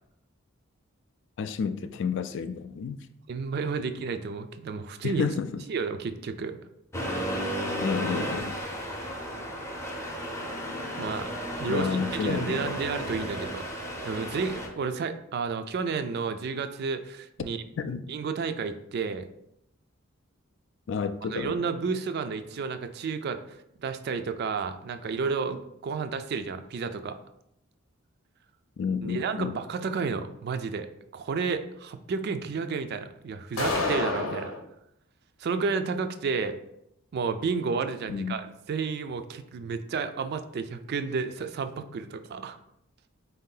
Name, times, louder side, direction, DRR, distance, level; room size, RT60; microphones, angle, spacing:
voice 1, 1.4-3.0 5.0-5.6 7.8-8.5 11.7-12.8 17.8-18.1 20.9-21.6 28.8-29.6 38.1-38.4, left 6 dB, 60° left, 11 dB, 0.3 m, -30 dB
voice 2, 3.3-5.3 5.7-6.6 11.0-13.7 14.0-17.6 18.1-19.3 21.3-27.2 29.0-30.9 31.1-34.5 35.4-36.6 37.1-42.6, right 5 dB, 50° right, 9 dB, 0.3 m, -31 dB
Accelerating revving vroom, 6.9-14.7, equal, 15° left, 0.6 m, -33 dB
sound 1, 33.6-34.6, left 3 dB, 85° left, 0.8 m, -28 dB
4.4 x 2.7 x 3.8 m, 0.79 s
head